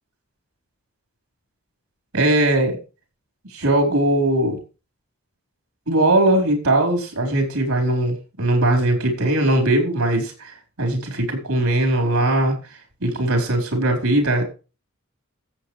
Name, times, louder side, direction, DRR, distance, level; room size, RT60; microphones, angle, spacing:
voice 1, 2.1-2.8 3.5-4.6 5.9-12.6 13.0-14.4, right 1 dB, 80° right, 3 dB, 4.4 m, -20 dB
14.5 x 8.3 x 3.2 m, 0.32 s
head